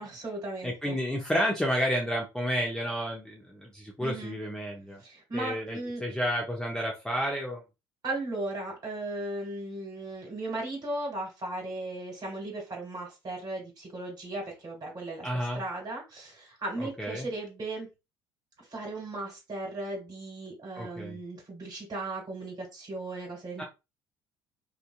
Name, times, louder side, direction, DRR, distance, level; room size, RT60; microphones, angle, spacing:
voice 1, 0.0-1.0 4.0-4.4 5.0-6.0 8.0-15.3 15.5-17.9 18.6-23.6, right 2 dB, 35° right, 0 dB, 1.8 m, -36 dB
voice 2, 0.6-5.0 5.3-7.6 15.2-15.6 16.8-17.3 20.8-21.2 23.6-23.7, equal, 5° left, -1 dB, 0.8 m, -31 dB
2.7 x 2.4 x 2.4 m, 0.26 s
figure-of-eight pair, 60°, 12 cm